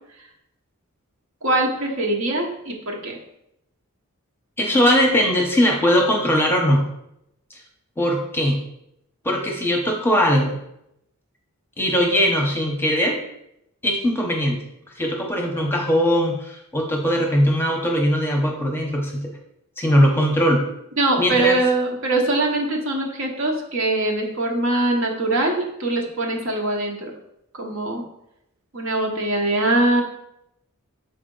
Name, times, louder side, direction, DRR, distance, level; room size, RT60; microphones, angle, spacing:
voice 1, 1.4-3.2 21.0-27.1 27.5-28.0 28.7-30.0, right 2 dB, 60° right, 1 dB, 1.1 m, -22 dB
voice 2, 4.6-6.9 8.0-8.6 9.2-10.6 11.8-13.2 13.8-14.6 15.0-19.3 19.8-20.6 21.2-21.6, equal, 10° left, 0 dB, 0.8 m, -20 dB
6.3 x 4.2 x 3.9 m, 0.80 s
head